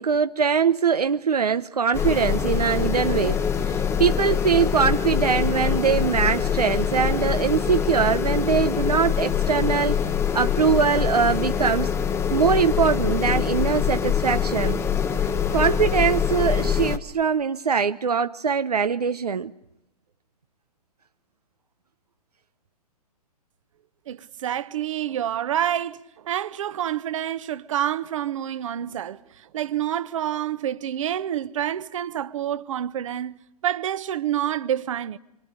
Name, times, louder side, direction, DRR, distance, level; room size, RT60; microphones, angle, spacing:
voice 1, 0.0-10.0 10.3-11.9 12.3-14.8 15.5-19.5, right 6 dB, 75° right, 0.8 m, -22 dB
sound 1, 1.9-17.0, left 7 dB, 15° left, 0.9 m, -24 dB
voice 2, 24.1-29.2 29.5-35.2, right 11 dB, 55° right, 1.2 m, -28 dB
27.0 x 25.0 x 6.6 m
figure-of-eight pair, 115°, 20 cm